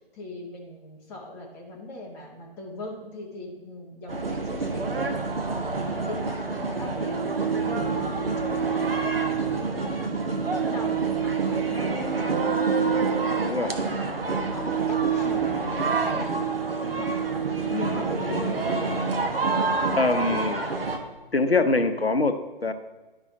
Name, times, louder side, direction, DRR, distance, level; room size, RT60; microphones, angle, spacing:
voice 1, 0.1-13.7 14.1-19.0, left 2 dB, 5° left, -2 dB, 0.5 m, -39 dB
sound 1, 4.1-21.0, right 4 dB, 75° right, 1.1 m, -27 dB
voice 2, 19.9-20.7 21.3-22.7, left 3 dB, 90° left, 9 dB, 0.8 m, -23 dB
11.0 x 5.6 x 3.7 m, 1.1 s
figure-of-eight pair, 135°, 29 cm